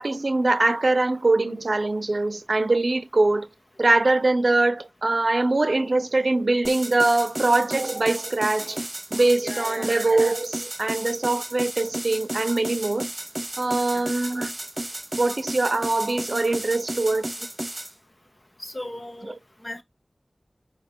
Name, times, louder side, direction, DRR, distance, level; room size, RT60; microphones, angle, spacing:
voice 1, 0.0-3.5 3.8-8.8 9.1-13.0 13.6-14.5 15.2-17.3 19.2-19.3, right 2 dB, 60° right, 0.7 m, -22 dB
sound 1, 6.6-17.9, right 1 dB, 30° right, 1.3 m, -33 dB
voice 2, 9.4-9.9 13.9-14.0 18.6-19.3 19.6-19.8, left 1 dB, 30° left, 1.2 m, -37 dB
9.0 x 3.1 x 3.6 m
wide cardioid pair, 65°, 0 cm